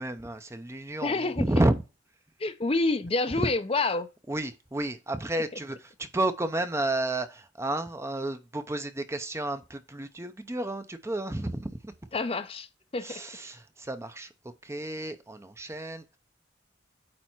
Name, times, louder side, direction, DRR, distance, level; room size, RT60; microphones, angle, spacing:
voice 1, 0.0-1.8 3.3-3.5 4.3-11.9 13.0-14.3 14.6-16.2, right 1 dB, 15° right, 0.6 m, -31 dB
voice 2, 1.0-1.4 2.4-4.1 12.1-12.7 12.9-13.2, left 3 dB, 30° left, 0.6 m, -27 dB
8.8 x 3.4 x 4.5 m
head